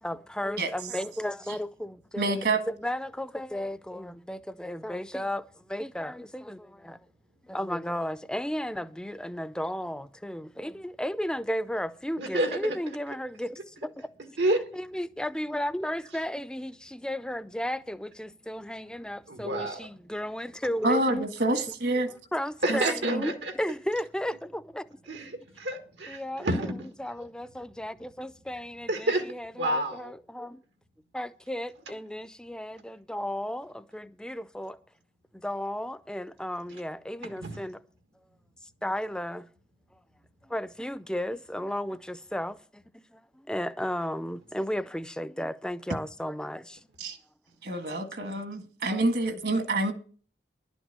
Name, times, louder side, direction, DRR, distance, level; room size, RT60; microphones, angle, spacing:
voice 1, 0.0-7.0 7.4-14.1 14.7-21.3 21.9-23.3 23.6-24.8 26.1-26.5 27.0-30.6 31.1-34.8 35.3-37.8 38.8-39.5 40.4-46.8 48.2-48.3 48.9-49.0, equal, 5° left, 0.4 m, -34 dB
voice 2, 2.2-2.6 20.8-22.1 22.7-23.2 47.0-47.2 47.6-49.9, right 2 dB, 65° right, 1.7 m, -27 dB
voice 3, 12.2-13.0 14.4-14.6 19.3-19.9 22.6-23.5 25.1-26.8 28.9-29.2 29.5-30.1 37.4-37.6, right 1 dB, 85° right, 1.5 m, -29 dB
11.5 x 6.2 x 8.1 m
head